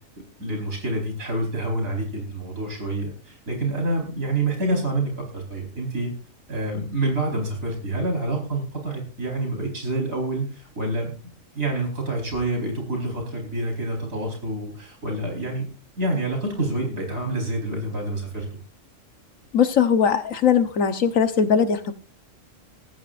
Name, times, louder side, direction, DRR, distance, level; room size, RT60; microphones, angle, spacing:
voice 1, 0.4-6.1 6.5-11.1 11.5-15.7 16.0-18.5, right 2 dB, 90° right, 1 dB, 5.1 m, -27 dB
voice 2, 19.5-21.9, left 7 dB, 75° left, 9 dB, 1.5 m, -20 dB
19.0 x 14.0 x 2.6 m, 0.36 s
omnidirectional pair, 1.4 m